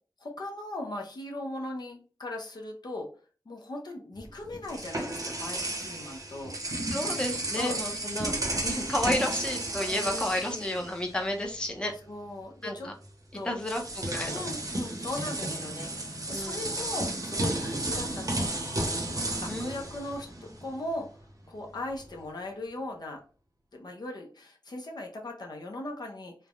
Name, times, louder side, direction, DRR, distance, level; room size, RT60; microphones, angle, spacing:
voice 1, 0.2-3.1 3.5-6.6 7.0-7.1 7.6-7.8 9.8-10.8 12.1-12.9 13.3-13.6 14.3-18.4 19.4-21.1 21.5-23.2 23.7-26.3, left 2 dB, 60° left, 1 dB, 0.6 m, -38 dB
sound 1, 4.2-11.4 11.7-11.9 13.0-13.1 13.6-20.8, right 2 dB, 45° right, 0.7 m, -33 dB
voice 2, 6.9-11.9 12.6-12.9 13.4-14.4 16.3-16.6 19.5-19.8, left 1 dB, 10° left, 2 dB, 0.6 m, -32 dB
3.2 x 2.1 x 2.4 m, 0.39 s
wide cardioid pair, 75°, 8 cm